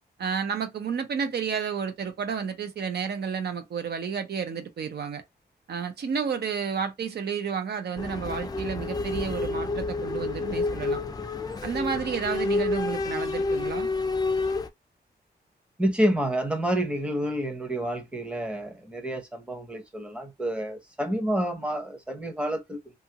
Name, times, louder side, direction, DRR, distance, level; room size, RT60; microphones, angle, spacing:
voice 1, 0.2-5.2 5.7-11.0 11.6-13.9, right 6 dB, 70° right, 0.5 m, -31 dB
sound 1, 8.0-14.7, left 3 dB, 20° left, 0.4 m, -29 dB
voice 2, 15.8-22.8, right 1 dB, 5° right, 0.7 m, -28 dB
2.8 x 2.4 x 2.8 m
wide cardioid pair, 145°, 18 cm